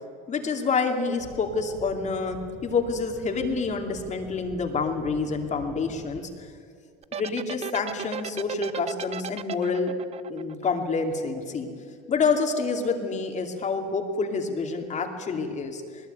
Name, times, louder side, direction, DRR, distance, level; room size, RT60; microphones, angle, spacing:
voice 1, 0.3-6.5 7.1-9.9 10.3-11.7 12.1-15.8, left 4 dB, 35° left, 3 dB, 2.7 m, -28 dB
sound 1, 1.2-6.2, right 4 dB, 70° right, 2.3 m, -45 dB
sound 2, 7.0-11.4, right 8 dB, 30° right, 0.6 m, -35 dB
20.5 x 20.0 x 9.3 m, 2.2 s
supercardioid pair, 110°, 21 cm